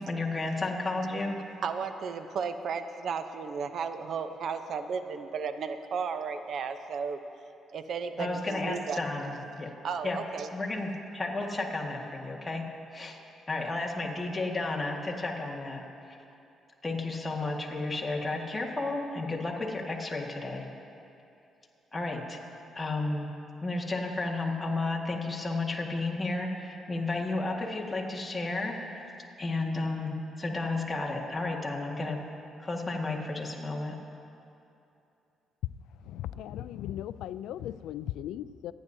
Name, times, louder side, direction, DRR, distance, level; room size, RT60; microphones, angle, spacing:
voice 1, 0.0-1.4 8.2-9.7 10.0-10.2 10.5-12.6 12.9-13.2 13.5-15.8 16.8-20.7 21.9-22.4 22.7-23.3 23.6-28.7 29.4-32.2 32.6-33.9, left 2 dB, 20° left, 1.7 m, -32 dB
voice 2, 1.6-7.2 7.7-9.0 9.8-10.5, right 6 dB, 65° right, 0.7 m, -34 dB
voice 3, 36.0-38.7, left 12 dB, 90° left, 0.3 m, -37 dB
27.5 x 9.4 x 2.7 m
cardioid pair, 90°, 0 cm